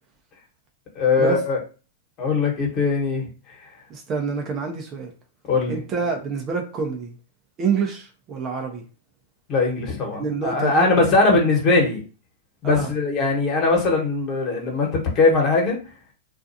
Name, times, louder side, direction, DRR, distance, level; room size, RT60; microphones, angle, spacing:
voice 1, 0.9-1.6 2.2-3.3 5.5-5.8 9.5-12.0 12.6-15.8, left 3 dB, 35° left, 1.2 m, -20 dB
voice 2, 3.9-5.1 5.7-7.1 7.6-8.8 10.2-10.9 12.6-12.9, right 5 dB, 30° right, 0.6 m, -27 dB
2.5 x 2.3 x 2.7 m
hypercardioid pair, 120°, 0 cm